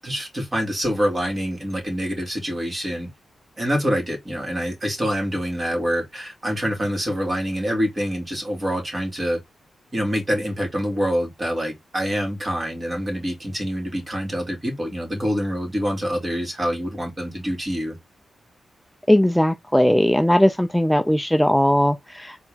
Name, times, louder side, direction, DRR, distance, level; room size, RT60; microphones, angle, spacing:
voice 1, 0.0-3.1 3.6-9.4 9.9-18.0, equal, 25° right, 2.6 m, -26 dB
voice 2, 19.1-22.5, equal, 5° left, 0.4 m, -18 dB
4.4 x 3.0 x 3.6 m
cardioid pair, 85°, 0 cm